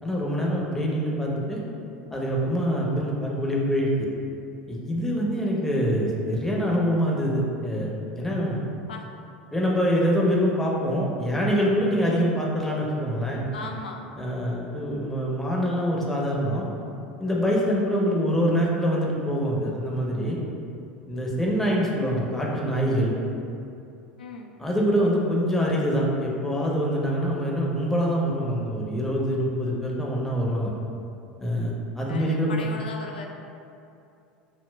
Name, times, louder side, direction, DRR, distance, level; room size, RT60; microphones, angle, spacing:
voice 1, 0.0-1.6 2.1-4.1 4.7-8.6 9.5-13.5 14.2-16.6 17.2-20.4 21.1-23.1 24.6-30.7 31.4-32.5, equal, 5° left, -4 dB, 0.7 m, -25 dB
voice 2, 13.5-14.0 24.2-24.5 32.1-33.3, left 3 dB, 75° left, 2 dB, 0.4 m, -37 dB
5.8 x 2.1 x 2.2 m, 2.6 s
figure-of-eight pair, 75°, 5 cm